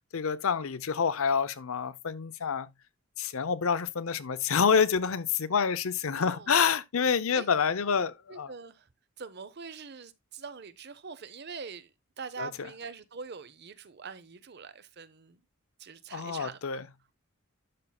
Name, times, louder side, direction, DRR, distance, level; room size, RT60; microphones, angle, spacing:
voice 1, 0.1-2.7 3.2-8.5 12.4-12.5 16.1-16.8, left 6 dB, 70° left, 0.6 m, -27 dB
voice 2, 6.1-6.6 7.3-7.5 8.3-8.9 9.2-15.4 15.8-16.8, right 5 dB, 50° right, 0.7 m, -44 dB
12.0 x 5.6 x 2.3 m
head